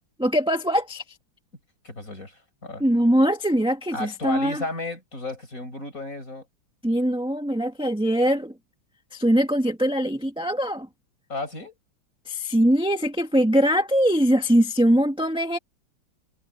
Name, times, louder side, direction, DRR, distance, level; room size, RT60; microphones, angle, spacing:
voice 1, 0.2-1.0 2.8-4.6 6.8-8.5 9.1-10.9 12.2-15.6, equal, 5° right, 1.3 m, -22 dB
voice 2, 1.8-2.9 3.9-6.5 11.3-11.7, left 2 dB, 35° left, 7.4 m, -33 dB
omnidirectional pair, 2.4 m